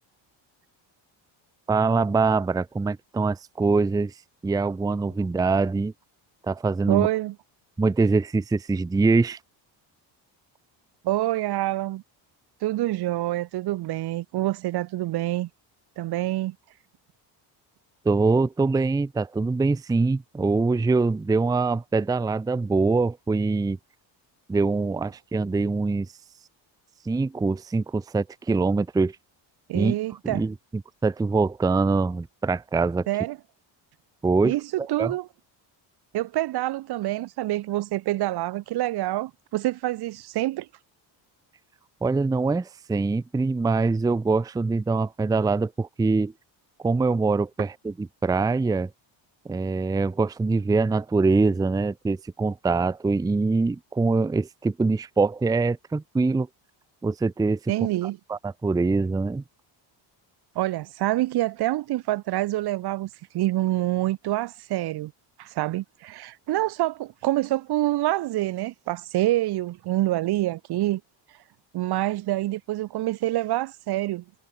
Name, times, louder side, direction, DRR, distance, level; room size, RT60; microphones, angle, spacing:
voice 1, 1.7-4.1 4.4-5.9 6.5-7.1 7.8-9.4 18.0-23.8 24.5-26.1 27.0-29.2 29.7-30.0 30.2-33.1 34.2-35.1 42.0-46.3 46.8-48.9 49.4-56.5 57.0-57.6 58.3-59.4, right 3 dB, 10° right, 0.6 m, -24 dB
voice 2, 6.9-7.3 11.0-12.0 12.6-15.5 16.0-16.5 29.7-30.4 33.1-33.4 34.4-35.3 36.1-40.7 57.7-58.2 60.5-65.1 65.4-71.0 71.7-74.2, right 16 dB, 55° right, 1.0 m, -26 dB
cardioid pair, 170°, 46 cm